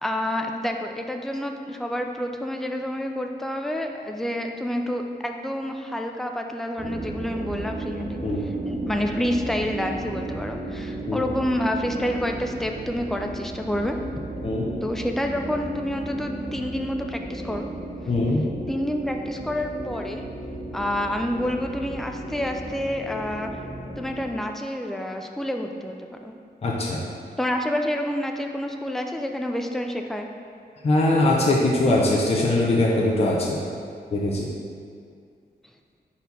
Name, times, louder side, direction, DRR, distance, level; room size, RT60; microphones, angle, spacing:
voice 1, 0.0-14.0 14.8-17.7 18.7-20.2 20.7-23.5 24.0-26.0 26.2-26.3 27.4-30.3, left 1 dB, ahead, 3 dB, 0.3 m, -28 dB
sound 1, 6.8-24.3, right 1 dB, 30° right, 0.8 m, -34 dB
voice 2, 18.1-18.5 26.6-27.0 30.8-33.6 34.1-34.5, left 2 dB, 35° left, -3 dB, 0.6 m, -21 dB
4.5 x 4.2 x 5.3 m, 2.2 s
wide cardioid pair, 165°, 17 cm